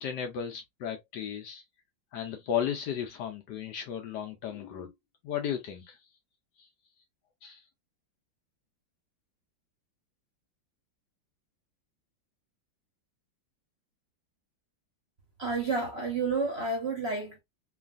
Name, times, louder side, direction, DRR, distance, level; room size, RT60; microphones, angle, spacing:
voice 1, 0.0-1.6 2.1-4.9 5.2-6.0 6.6-6.7 7.4-7.6, left 9 dB, 70° left, 1.1 m, -34 dB
voice 2, 15.4-17.4, right 3 dB, 50° right, 0.8 m, -30 dB
3.2 x 2.4 x 2.4 m
omnidirectional pair, 2.2 m